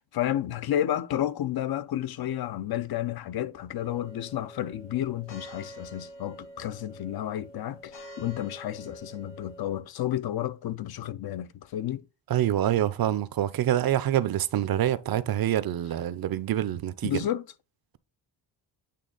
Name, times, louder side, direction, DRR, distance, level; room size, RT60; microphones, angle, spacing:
voice 1, 0.0-12.0 17.0-17.4, left 12 dB, 60° left, 0.6 m, -31 dB
sound 1, 3.7-9.8, equal, 85° left, 1.9 m, -47 dB
voice 2, 12.3-17.3, right 11 dB, 60° right, 0.6 m, -26 dB
8.5 x 3.3 x 3.9 m
wide cardioid pair, 135°, 42 cm